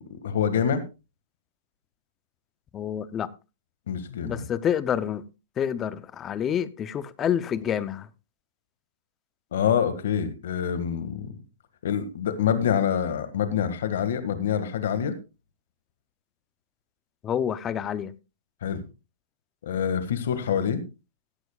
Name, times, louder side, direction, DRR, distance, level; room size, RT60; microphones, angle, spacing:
voice 1, 0.1-0.8 3.9-4.5 9.5-11.3 11.8-15.2 18.6-18.8 19.6-20.8, left 8 dB, 65° left, 1.7 m, -26 dB
voice 2, 2.7-3.3 4.2-5.2 5.6-8.1 17.2-18.1, left 9 dB, 15° left, 0.6 m, -28 dB
16.0 x 12.0 x 2.3 m
hypercardioid pair, 170°, 0 cm